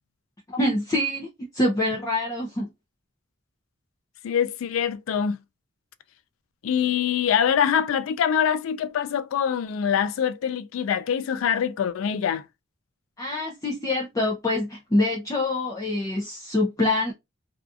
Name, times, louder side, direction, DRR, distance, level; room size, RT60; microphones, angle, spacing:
voice 1, 0.5-2.7 13.2-17.1, left 1 dB, 15° left, 0.5 m, -25 dB
voice 2, 4.2-5.4 6.6-12.4, left 8 dB, 90° left, 0.3 m, -24 dB
2.6 x 2.3 x 2.3 m
head